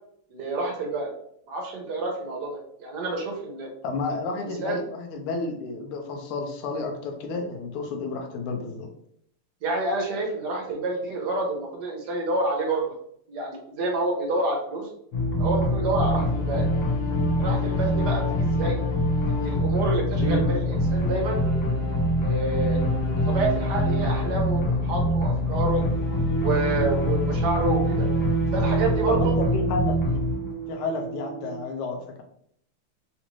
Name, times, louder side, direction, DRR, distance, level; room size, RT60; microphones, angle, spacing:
voice 1, 0.3-1.1 1.5-3.7 4.1-4.8 9.6-12.9 13.3-14.9 15.4-16.7 17.4-18.8 19.3-21.4 22.2-22.8 23.2-25.8 26.4-28.1 28.5-29.4, right 2 dB, 60° right, 0 dB, 1.2 m, -28 dB
voice 2, 3.8-8.9 20.2-20.5 29.1-30.2 30.7-32.2, left 3 dB, 80° left, 2 dB, 1.6 m, -31 dB
sound 1, 15.1-31.6, equal, 55° left, 1.2 m, -24 dB
4.1 x 2.5 x 3.0 m, 0.69 s
omnidirectional pair, 2.4 m